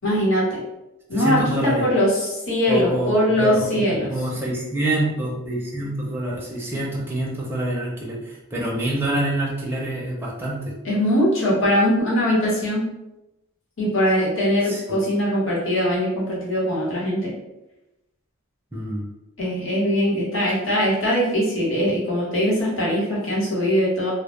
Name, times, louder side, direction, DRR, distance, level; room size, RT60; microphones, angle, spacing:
voice 1, 0.0-0.6 1.1-4.1 10.8-12.8 13.8-17.3 19.4-24.1, equal, 85° left, -6 dB, 1.0 m, -21 dB
voice 2, 1.1-1.9 2.7-10.6 14.7-15.0 18.7-19.1, right 1 dB, 10° right, -3 dB, 0.4 m, -26 dB
2.1 x 2.0 x 3.0 m, 0.95 s
head